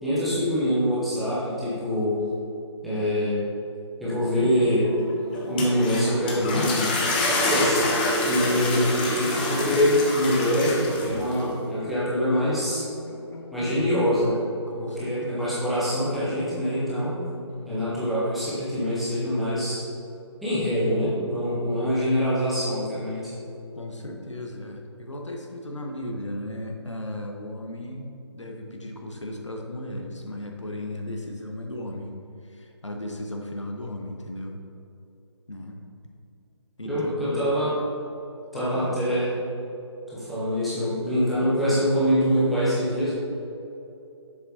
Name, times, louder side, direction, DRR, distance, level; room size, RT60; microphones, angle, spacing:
voice 1, 0.0-2.2 2.8-3.4 4.0-4.9 5.5-6.9 7.3-7.8 8.3-12.9 13.5-14.3 14.8-17.2 17.7-19.9 20.4-23.3 36.8-37.8 38.5-39.3 40.1-43.1, equal, ahead, -12 dB, 1.0 m, -24 dB
sound 1, 4.0-14.4, left 1 dB, 55° left, 1.1 m, -39 dB
sound 2, 5.4-11.4, left 1 dB, 20° left, 0.7 m, -26 dB
voice 2, 14.6-15.5 17.5-18.1 23.8-32.1 32.5-34.6 35.5-35.8 36.8-37.5 38.5-39.0, left 1 dB, 80° left, 2 dB, 0.9 m, -36 dB
7.3 x 6.7 x 2.9 m, 2.8 s
figure-of-eight pair, 145°, 15 cm